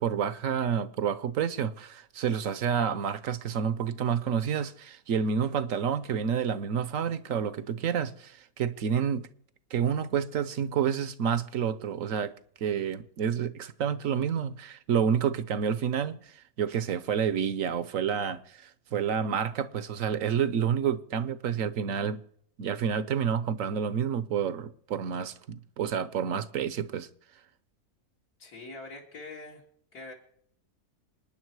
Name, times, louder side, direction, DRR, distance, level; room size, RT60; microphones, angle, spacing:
voice 1, 0.0-9.3 9.7-12.3 12.6-22.2 22.6-27.1, right 7 dB, 65° right, 1.1 m, -29 dB
voice 2, 28.4-29.6 29.9-30.1, left 3 dB, 75° left, 3.0 m, -43 dB
27.0 x 9.8 x 4.7 m
omnidirectional pair, 1.6 m